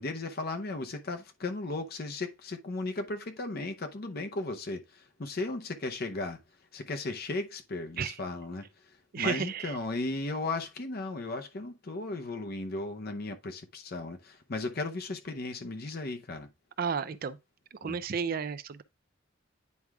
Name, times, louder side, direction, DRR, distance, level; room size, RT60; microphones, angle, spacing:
voice 1, 0.0-6.4 6.7-8.7 9.2-16.5 17.8-18.0, left 2 dB, 50° left, 0.7 m, -36 dB
voice 2, 9.1-9.8 16.8-17.4 17.8-18.8, right 6 dB, 50° right, 0.4 m, -32 dB
9.4 x 4.7 x 2.3 m
head